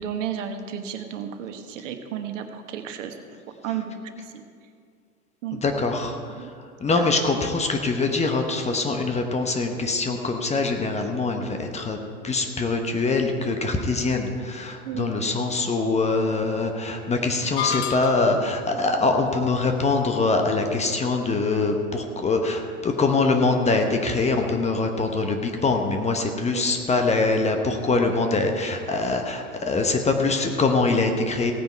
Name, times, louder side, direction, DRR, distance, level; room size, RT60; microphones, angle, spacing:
voice 1, 0.0-3.1 3.6-3.9 4.3-4.4 5.4-5.6 6.3-6.5 7.0-7.1 14.8-15.1 26.5-26.6, right 9 dB, 55° right, 7 dB, 1.3 m, -32 dB
voice 2, 5.5-6.5 6.8-12.0 12.2-31.5, left 3 dB, 15° left, 4 dB, 1.0 m, -23 dB
sound 1, 17.6-18.5, left 8 dB, 50° left, 0.6 m, -29 dB
17.0 x 9.3 x 4.6 m, 2.2 s
figure-of-eight pair, 90°, 44 cm